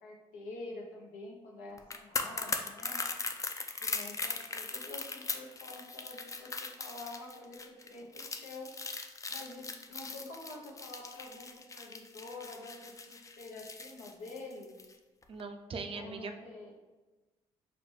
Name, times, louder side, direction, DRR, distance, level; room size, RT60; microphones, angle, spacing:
voice 1, 0.0-3.0 3.8-8.7 9.3-14.7 15.9-16.8, left 2 dB, 80° left, -1 dB, 0.8 m, -47 dB
sound 1, 1.8-14.9 15.2-15.4, left 3 dB, 25° left, 0.4 m, -39 dB
voice 2, 15.3-16.3, right 4 dB, 40° right, 5 dB, 0.4 m, -40 dB
5.0 x 2.1 x 3.1 m, 1.2 s
hypercardioid pair, 55°, 14 cm